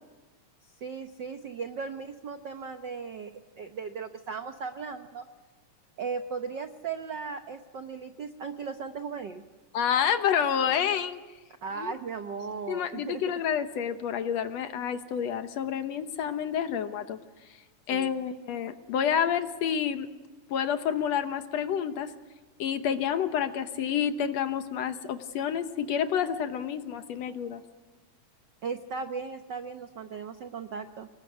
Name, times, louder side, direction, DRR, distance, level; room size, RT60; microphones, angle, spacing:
voice 1, 0.8-5.3 6.0-9.4 11.6-13.2 17.9-18.1 28.6-31.1, right 5 dB, 80° right, 7 dB, 0.9 m, -37 dB
voice 2, 9.7-11.2 11.8-11.9 12.7-17.2 17.5-17.6 17.9-20.1 20.5-22.1 22.6-27.6, left 8 dB, 65° left, 9 dB, 2.1 m, -29 dB
25.0 x 20.5 x 9.3 m, 1.2 s
omnidirectional pair, 3.5 m